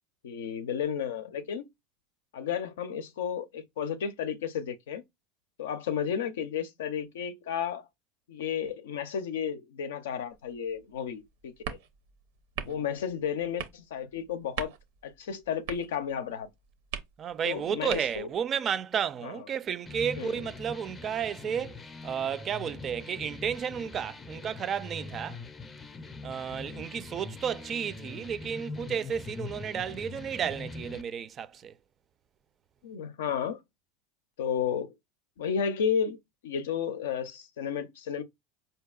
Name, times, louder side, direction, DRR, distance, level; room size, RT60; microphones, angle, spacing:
voice 1, 0.2-1.7 2.3-5.0 5.6-7.9 8.3-11.8 12.7-14.7 15.0-16.5 17.4-18.3 19.2-19.3 20.2-20.5 32.8-33.6 34.4-34.9 35.4-38.2, left 7 dB, 85° left, 0.5 m, -32 dB
sound 1, 10.3-18.4, right 8 dB, 80° right, 0.6 m, -43 dB
voice 2, 17.2-25.4 26.2-31.7, right 8 dB, 35° right, 0.4 m, -32 dB
sound 2, 19.9-31.0, left 3 dB, 25° left, 0.5 m, -43 dB
4.4 x 2.7 x 2.3 m
hypercardioid pair, 100°, 0 cm